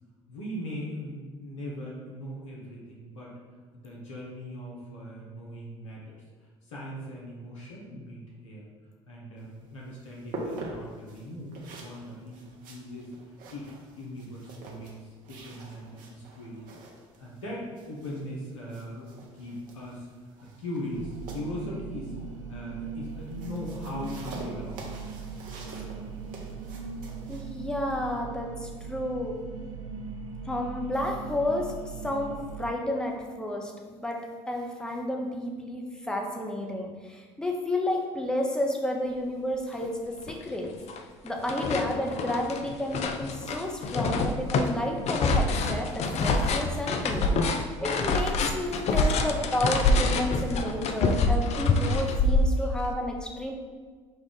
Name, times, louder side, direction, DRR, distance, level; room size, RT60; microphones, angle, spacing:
voice 1, 0.3-3.3 3.7-6.2 6.6-8.7 9.1-13.1 13.5-16.8 17.2-22.2 22.5-24.9, left 1 dB, 85° left, -4 dB, 0.9 m, -39 dB
sound 1, 9.4-28.2, right 2 dB, 60° right, 0.9 m, -45 dB
sound 2, 20.9-32.7, right 5 dB, 90° right, 0.4 m, -39 dB
voice 2, 27.3-29.4 30.5-31.7 32.0-34.2 34.5-40.7 41.2-53.5, left 1 dB, 5° left, 1 dB, 0.7 m, -31 dB
sound 3, 39.8-39.9 40.3-41.0 41.3-52.9, left 3 dB, 45° left, 0.4 m, -26 dB
5.4 x 2.4 x 3.8 m, 1.5 s
hypercardioid pair, 65°, 16 cm